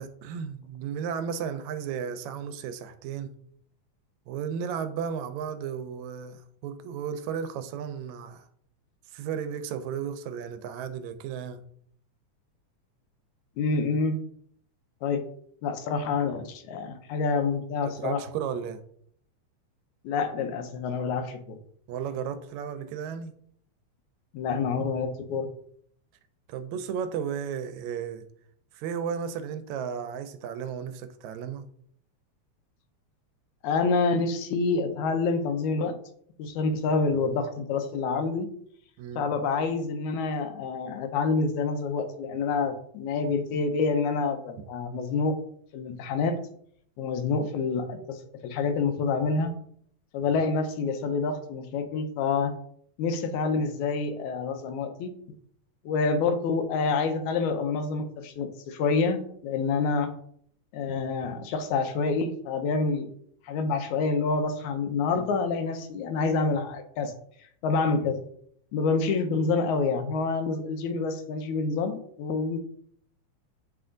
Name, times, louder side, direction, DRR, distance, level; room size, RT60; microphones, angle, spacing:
voice 1, 0.0-3.3 4.3-8.5 9.1-11.6 18.0-18.8 21.9-23.4 26.5-28.3 28.7-31.7 39.0-39.3, right 7 dB, 80° right, 1.8 m, -34 dB
voice 2, 13.6-14.2 15.0-15.3 15.6-18.2 20.0-21.6 24.3-25.5 33.6-36.0 36.4-38.5 39.2-45.4 45.7-46.4 47.0-49.5 50.1-52.5 53.0-55.1 55.9-60.1 60.7-63.1 63.4-67.1 67.6-68.2 68.7-72.6, left 4 dB, 90° left, 2.1 m, -27 dB
7.6 x 3.3 x 3.7 m
omnidirectional pair, 3.3 m